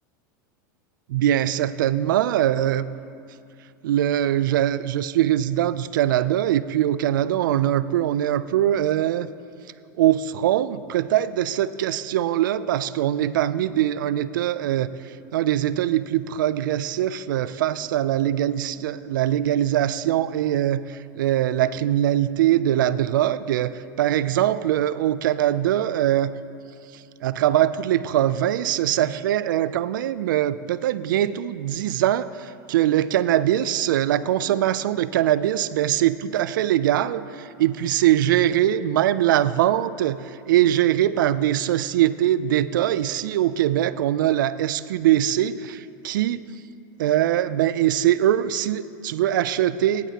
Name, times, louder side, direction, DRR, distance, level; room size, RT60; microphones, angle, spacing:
voice 1, 1.1-2.9 3.8-9.3 10.0-14.9 15.3-23.7 24.0-26.3 27.2-46.5 47.0-50.1, right 12 dB, 85° right, 16 dB, 0.4 m, -22 dB
18.0 x 9.0 x 2.9 m, 2.4 s
hypercardioid pair, 105°, 11 cm